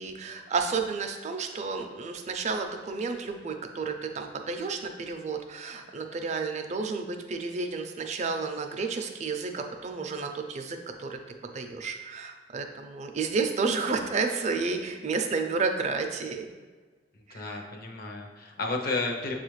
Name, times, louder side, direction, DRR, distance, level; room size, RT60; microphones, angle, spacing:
voice 1, 0.0-16.5 17.3-17.6, right 4 dB, 40° right, 5 dB, 0.4 m, -31 dB
voice 2, 17.2-19.3, left 3 dB, 55° left, 2 dB, 0.6 m, -32 dB
7.1 x 2.4 x 3.1 m, 1.4 s
head